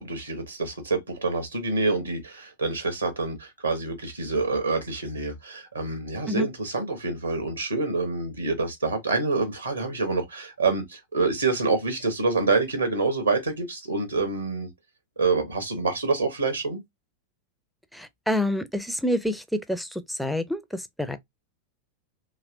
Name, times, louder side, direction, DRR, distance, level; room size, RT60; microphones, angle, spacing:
voice 1, 0.0-14.7 15.2-16.8, right 3 dB, 80° right, 1.1 m, -27 dB
voice 2, 17.9-19.4 19.7-21.2, left 1 dB, ahead, 0.5 m, -28 dB
3.1 x 2.9 x 2.5 m
figure-of-eight pair, 90°, 0 cm